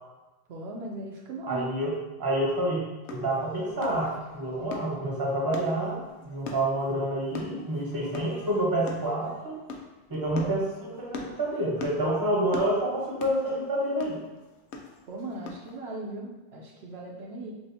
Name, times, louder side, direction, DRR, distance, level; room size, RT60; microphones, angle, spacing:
voice 1, 0.5-1.7 15.1-17.5, right 2 dB, 75° right, -2 dB, 0.8 m, -38 dB
voice 2, 1.5-1.9 2.2-9.6 10.1-14.2, right 1 dB, 20° right, -4 dB, 0.9 m, -28 dB
sound 1, 3.0-15.8, left 4 dB, 85° left, 0.9 m, -42 dB
5.9 x 2.4 x 2.7 m, 1.1 s
omnidirectional pair, 1.1 m